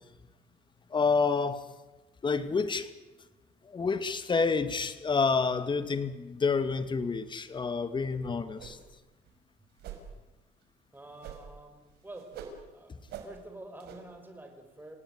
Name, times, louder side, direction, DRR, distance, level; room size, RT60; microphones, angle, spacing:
voice 1, 0.9-1.6 2.2-2.9 3.6-8.8, left 4 dB, 30° left, 12 dB, 2.2 m, -28 dB
sound 1, 8.6-9.0 9.3-9.4 9.8-10.1 11.2-11.6 11.9-12.6 13.1-13.3 13.8-14.0, right 8 dB, 75° right, 5.6 m, -44 dB
voice 2, 10.9-12.3 12.7-12.9 13.2-15.0, right 2 dB, 10° right, 5 dB, 6.1 m, -47 dB
29.0 x 18.0 x 9.6 m, 1.1 s
cardioid pair, 110°, 17 cm